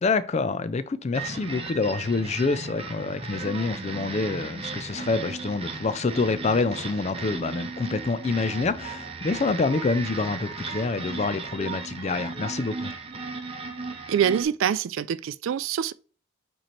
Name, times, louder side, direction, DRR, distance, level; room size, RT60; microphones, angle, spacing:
voice 1, 0.0-12.9, left 3 dB, 30° left, 0.3 m, -27 dB
sound 1, 1.1-14.4, right 4 dB, 25° right, 0.7 m, -36 dB
voice 2, 14.1-15.9, right 8 dB, 65° right, 0.3 m, -25 dB
7.5 x 3.1 x 4.3 m
head